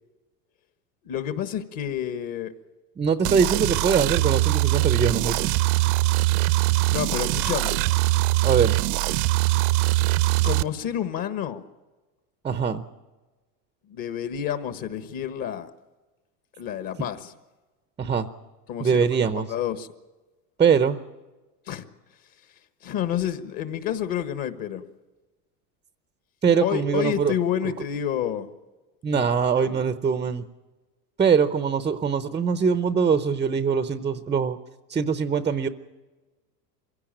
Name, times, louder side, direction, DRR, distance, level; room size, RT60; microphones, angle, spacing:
voice 1, 1.0-2.5 6.9-7.8 10.4-11.6 13.9-15.7 16.6-17.3 18.7-19.0 19.3-19.9 21.7-21.8 22.8-24.8 26.6-28.5 29.1-29.2 29.6-29.8, left 10 dB, 45° left, 11 dB, 1.5 m, -29 dB
voice 2, 3.0-5.5 8.4-8.8 12.4-12.8 18.0-18.3 18.8-19.5 20.6-21.0 26.4-27.3 29.0-30.4 31.2-34.6 34.9-35.7, right 6 dB, 15° right, 12 dB, 0.6 m, -22 dB
sound 1, 3.2-10.6, right 19 dB, 45° right, 0.7 m, -22 dB
24.0 x 16.5 x 8.9 m, 1.2 s
supercardioid pair, 130°, 50 cm